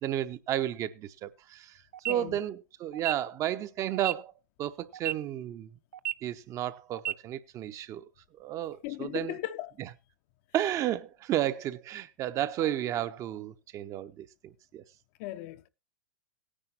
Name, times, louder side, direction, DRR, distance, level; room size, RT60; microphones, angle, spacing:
voice 1, 0.0-1.7 2.1-4.3 4.6-5.7 6.2-8.1 8.4-9.4 10.5-14.8, right 12 dB, 35° right, 0.8 m, -32 dB
sound 1, 1.9-2.1 2.9-3.1 3.9-4.1 4.9-5.1 5.9-6.1 6.9-7.1, right 12 dB, 65° right, 0.6 m, -32 dB
voice 2, 8.8-9.7 15.2-15.7, left 16 dB, 50° left, 0.8 m, -37 dB
17.5 x 10.0 x 2.9 m
hypercardioid pair, 100°, 10 cm